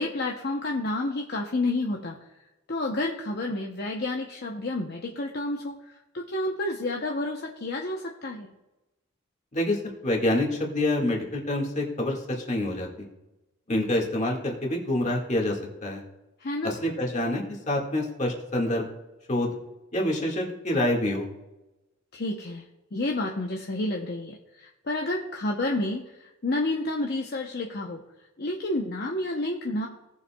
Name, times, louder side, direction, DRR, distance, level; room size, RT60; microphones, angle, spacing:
voice 1, 0.0-2.2 2.7-8.5 16.4-16.7 22.1-22.6 22.9-28.0 28.4-29.9, left 2 dB, 50° left, 0 dB, 0.8 m, -30 dB
voice 2, 9.5-13.1 13.7-16.0 16.6-18.9 19.3-19.5 19.9-21.3, left 1 dB, 35° left, 0 dB, 1.8 m, -27 dB
17.5 x 7.1 x 2.3 m, 0.99 s
head